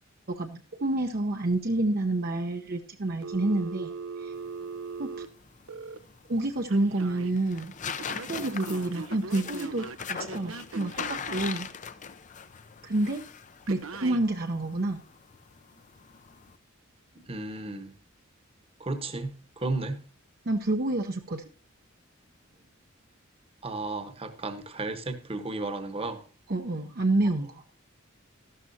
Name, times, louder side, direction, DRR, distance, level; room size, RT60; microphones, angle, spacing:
voice 1, 0.3-3.9 4.2-4.3 5.0-5.1 6.3-7.7 8.3-11.7 12.8-13.2 13.7-15.0 20.5-21.4 26.5-27.6, right 2 dB, 50° right, 0.8 m, -28 dB
Telephone, 3.2-6.0 6.7-7.3 7.9-11.6 13.7-14.2, right 4 dB, 85° right, 0.9 m, -39 dB
sound 1, 4.3-16.6, left 7 dB, 40° left, 0.6 m, -41 dB
voice 2, 17.3-17.9 18.8-20.0 23.6-26.2, right 2 dB, 30° right, 1.1 m, -33 dB
13.0 x 12.0 x 2.7 m
head